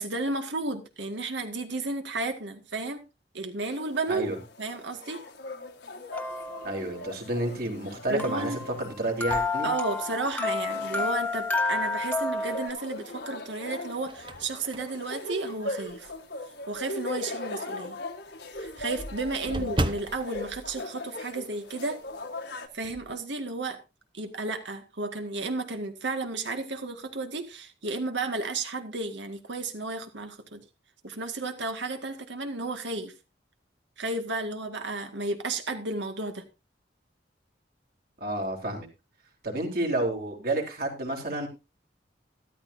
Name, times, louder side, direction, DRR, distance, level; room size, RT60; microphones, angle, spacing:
voice 1, 0.0-3.0 3.3-4.3 4.6-5.2 8.1-8.6 9.6-16.1 16.7-18.0 18.6-22.0 22.7-23.8 24.1-30.6 31.0-33.1 34.0-36.4, right 3 dB, 80° right, 6 dB, 2.0 m, -33 dB
sound 1, 3.7-22.7, left 2 dB, 65° left, 1.5 m, -40 dB
voice 2, 4.1-4.4 6.6-9.7 19.5-19.7 38.2-38.9 39.4-41.5, right 1 dB, 55° right, 1 dB, 3.4 m, -30 dB
sound 2, 6.1-7.0 8.2-12.7, left 3 dB, 10° left, 1.3 m, -30 dB
sound 3, 9.2-10.5 11.1-11.2 12.6-13.2 13.6-16.3 16.7-16.9 17.2-17.3 17.6-17.7 17.9-21.7 22.0-22.2 22.5-23.1, right 1 dB, 25° right, 0.8 m, -37 dB
13.5 x 13.0 x 2.7 m, 0.26 s
head